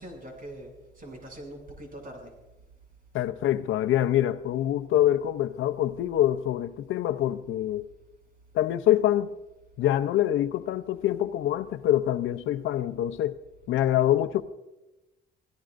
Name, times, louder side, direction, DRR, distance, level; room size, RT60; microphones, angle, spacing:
voice 1, 0.0-2.3 13.9-14.1, right 1 dB, 45° right, 6.8 m, -43 dB
voice 2, 3.1-7.9 8.5-9.3 9.8-13.4 13.7-14.4, left 12 dB, 80° left, 0.7 m, -25 dB
28.5 x 17.0 x 2.6 m
cardioid pair, 90°, 20 cm